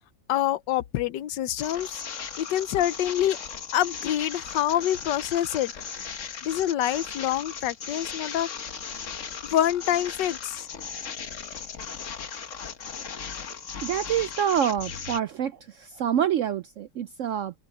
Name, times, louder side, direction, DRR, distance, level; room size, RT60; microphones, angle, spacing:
voice 1, 0.3-2.0 2.4-3.4 3.7-5.7 6.4-8.5 9.5-10.6, left 12 dB, 90° left, 1.4 m, -26 dB
sound 1, 1.6-15.2, left 6 dB, 50° left, 1.4 m, -37 dB
voice 2, 13.8-15.5 16.0-17.5, right 9 dB, 75° right, 0.7 m, -26 dB
omnidirectional pair, 1.8 m